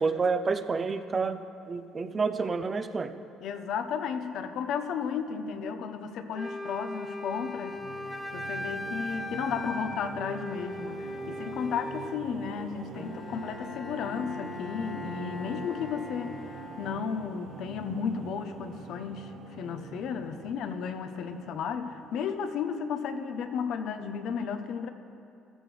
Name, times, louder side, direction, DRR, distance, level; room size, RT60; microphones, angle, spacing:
voice 1, 0.0-1.4 1.7-3.1, right 4 dB, 35° right, 10 dB, 0.7 m, -29 dB
voice 2, 3.4-7.8 8.3-16.4 16.8-24.9, left 6 dB, 70° left, 8 dB, 0.9 m, -33 dB
Wind instrument woodwind instrument, 6.3-12.2, left 1 dB, 5° left, 0.7 m, -38 dB
sound 1, 7.4-22.8, right 6 dB, 65° right, 0.8 m, -46 dB
Bowed string instrument, 12.9-17.5, left 3 dB, 30° left, 1.8 m, -42 dB
15.0 x 12.5 x 3.4 m, 2.7 s
supercardioid pair, 75°, 0 cm